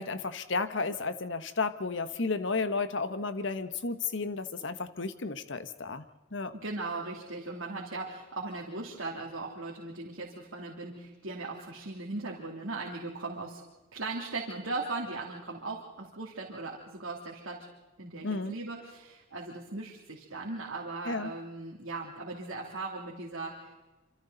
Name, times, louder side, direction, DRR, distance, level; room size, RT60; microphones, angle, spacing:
voice 1, 0.0-6.0 6.3-6.5 18.2-18.6 21.1-21.3, left 4 dB, 60° left, 11 dB, 1.2 m, -33 dB
voice 2, 6.5-13.6 13.9-17.7 18.0-23.7, right 3 dB, 75° right, -2 dB, 3.1 m, -38 dB
27.5 x 26.5 x 4.0 m, 1.1 s
head